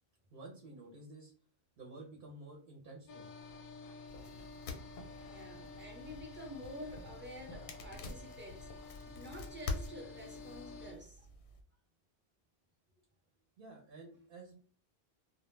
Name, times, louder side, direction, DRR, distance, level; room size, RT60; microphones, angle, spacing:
voice 1, 0.3-1.3 1.8-3.3 13.6-14.5, right 2 dB, 60° right, 0.8 m, -51 dB
sound 1, 3.1-10.9, left 4 dB, 60° left, 0.6 m, -51 dB
sound 2, 4.1-11.6, left 3 dB, 90° left, 0.9 m, -47 dB
voice 2, 5.2-11.3, equal, 15° right, 0.4 m, -49 dB
2.1 x 2.0 x 3.1 m
omnidirectional pair, 1.1 m